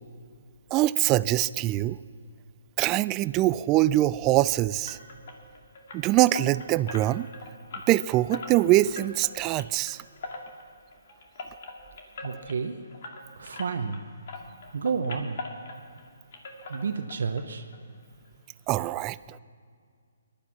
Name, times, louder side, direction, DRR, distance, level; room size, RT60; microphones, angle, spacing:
voice 1, 0.7-2.0 2.8-5.0 5.9-7.3 7.9-10.0 18.7-19.4, right 16 dB, 25° right, 19 dB, 0.3 m, -23 dB
sound 1, 4.9-14.0 14.3-16.1 16.3-17.4 17.7-17.8 18.3-18.4 18.7-18.8, left 3 dB, 55° left, 2.3 m, -42 dB
voice 2, 12.2-12.8 13.4-14.0 14.7-15.4 16.7-17.7, right 5 dB, 65° right, 7 dB, 0.9 m, -30 dB
20.5 x 12.0 x 5.8 m, 2.1 s
figure-of-eight pair, 140°, 0 cm